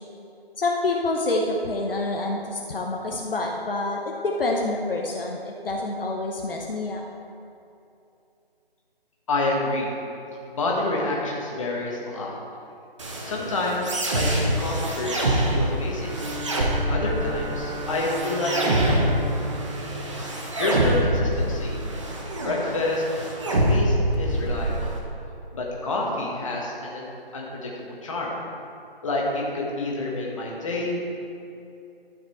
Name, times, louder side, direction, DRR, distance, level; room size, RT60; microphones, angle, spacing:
voice 1, 0.6-7.0, left 2 dB, 65° left, 0 dB, 1.0 m, -27 dB
voice 2, 9.3-9.9 10.5-12.3 13.2-13.8 14.1-16.2 16.9-19.2 20.6-21.8 22.4-23.0 23.7-24.9 25.5-28.3 29.0-31.2, left 2 dB, 30° left, -3 dB, 1.5 m, -28 dB
sound 1, 13.0-25.0, right 1 dB, 30° right, 1.0 m, -25 dB
Bowed string instrument, 15.9-21.2, left 1 dB, ahead, 1.8 m, -37 dB
12.5 x 5.9 x 4.4 m, 2.7 s
figure-of-eight pair, 165°, 30 cm